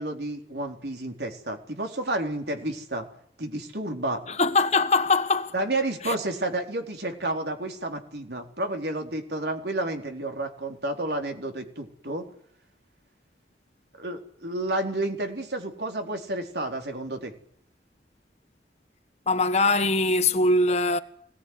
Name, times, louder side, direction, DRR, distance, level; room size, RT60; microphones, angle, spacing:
voice 1, 0.0-3.1 3.4-4.2 5.5-12.3 14.0-17.3, right 2 dB, 70° right, 4.1 m, -31 dB
voice 2, 4.3-5.5 6.0-6.1 19.3-21.0, left 3 dB, 40° left, 1.5 m, -22 dB
24.5 x 19.0 x 9.6 m
head